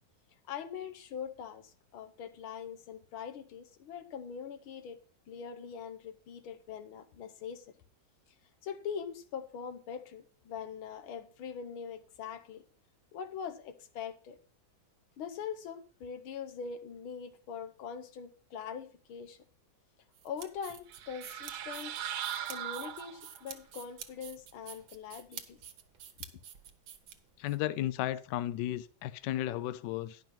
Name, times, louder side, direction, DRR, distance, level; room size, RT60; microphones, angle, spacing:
voice 1, 0.5-7.7 8.6-12.6 13.1-14.4 15.2-19.4 20.2-22.0 22.5-25.6, left 7 dB, 90° left, 1.8 m, -42 dB
sound 1, 20.1-27.6, right 9 dB, 70° right, 1.7 m, -49 dB
sound 2, 20.9-23.5, right 10 dB, 90° right, 1.6 m, -39 dB
voice 2, 27.4-30.2, left 13 dB, 70° left, 1.1 m, -34 dB
10.5 x 5.6 x 5.9 m
omnidirectional pair, 2.2 m